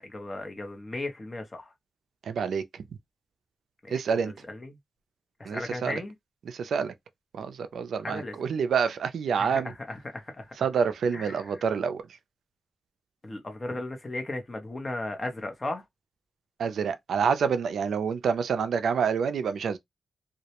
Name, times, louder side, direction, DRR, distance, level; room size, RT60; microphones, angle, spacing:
voice 1, 0.0-1.7 3.8-4.8 5.4-6.1 8.0-8.4 9.4-10.5 11.1-11.6 13.2-15.8, left 2 dB, 30° left, 0.7 m, -36 dB
voice 2, 2.3-2.6 3.9-4.3 5.5-6.0 6.5-6.9 7.3-9.7 10.6-12.0 16.6-19.8, right 6 dB, 90° right, 0.3 m, -27 dB
2.3 x 2.0 x 2.8 m
wide cardioid pair, 100°, 0 cm